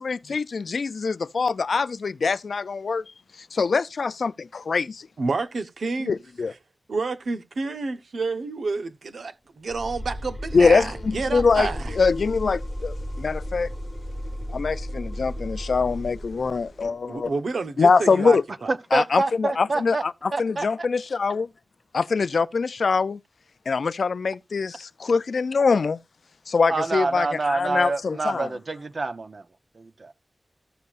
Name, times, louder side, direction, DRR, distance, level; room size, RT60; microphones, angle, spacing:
voice 1, 0.0-3.0 3.5-5.1 6.0-6.5 10.5-11.7 11.9-13.7 14.5-17.3 17.8-18.4 18.9-21.5 21.9-23.2 23.7-26.0 26.5-28.5, left 4 dB, 80° left, 0.4 m, -23 dB
voice 2, 5.2-6.1 6.9-12.0 17.1-18.7, right 3 dB, 90° right, 0.9 m, -29 dB
sound 1, 9.7-16.9, equal, ahead, 1.2 m, -34 dB
voice 3, 18.7-20.0 20.3-20.7 26.7-29.4 29.7-30.1, right 3 dB, 55° right, 0.9 m, -27 dB
14.5 x 6.8 x 2.5 m
wide cardioid pair, 105°, 0 cm